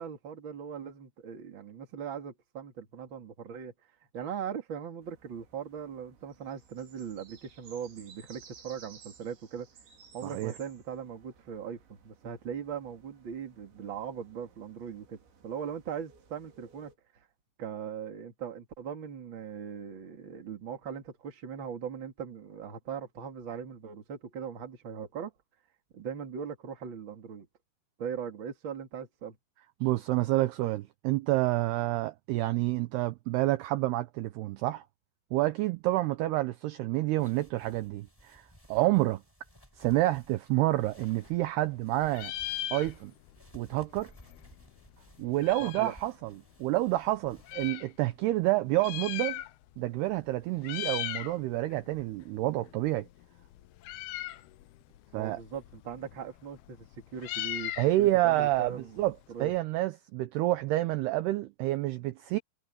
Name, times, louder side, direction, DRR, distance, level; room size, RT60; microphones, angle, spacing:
voice 1, 0.0-3.7 4.1-9.7 10.1-17.3 17.6-25.3 25.9-27.5 28.0-29.4 45.6-45.9 55.1-59.5, right 7 dB, 35° right, 2.1 m, -40 dB
sound 1, 5.0-17.0, right 6 dB, 65° right, 6.4 m, -57 dB
voice 2, 10.2-10.5 29.8-34.8 35.3-38.4 38.7-39.2 39.8-42.3 42.7-43.1 43.5-44.1 45.2-49.4 49.8-53.1 55.1-55.4 57.8-62.4, right 17 dB, 85° right, 2.3 m, -28 dB
sound 2, 37.2-47.7, left 1 dB, 5° left, 4.3 m, -58 dB
Meow, 40.8-41.8 42.1-43.4 43.6-43.7 43.9-46.0 46.7-47.9 48.6-49.8 50.1-50.3 50.6-51.4 51.7-59.6, left 14 dB, 85° left, 2.2 m, -39 dB
omnidirectional pair, 5.6 m